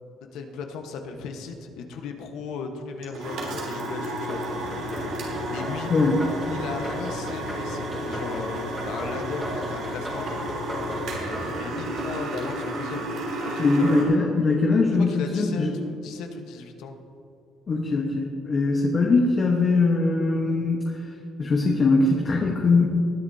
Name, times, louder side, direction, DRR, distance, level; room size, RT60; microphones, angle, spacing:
voice 1, 0.3-4.4 5.5-5.9 6.5-10.3 11.0-14.1 15.0-17.0, left 5 dB, 75° left, 4 dB, 1.2 m, -36 dB
sound 1, 3.0-14.1, right 1 dB, 70° right, 3.2 m, -32 dB
sound 2, 4.3-13.4, equal, 5° right, 2.5 m, -37 dB
voice 2, 5.9-6.2 13.6-15.7 17.7-20.9 21.4-22.9, left 3 dB, 30° left, -1 dB, 1.2 m, -21 dB
20.0 x 10.5 x 2.8 m, 2.7 s
cardioid pair, 160°, 0 cm